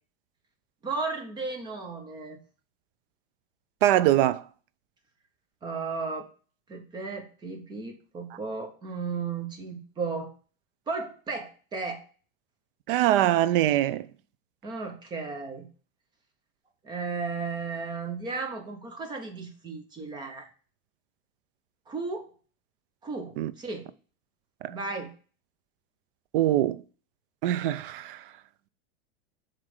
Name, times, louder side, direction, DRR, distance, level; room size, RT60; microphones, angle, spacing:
voice 1, 0.8-2.4 5.6-6.3 6.7-10.3 10.9-12.0 14.6-15.7 16.8-20.5 21.9-22.3 23.0-23.9 24.7-25.1, right 4 dB, 15° right, 0.8 m, -34 dB
voice 2, 3.8-4.4 12.9-14.1 23.4-23.5 24.6-24.8 26.3-26.8 27.4-28.2, right 13 dB, 60° right, 0.5 m, -23 dB
7.4 x 3.3 x 4.9 m
supercardioid pair, 170°, 31 cm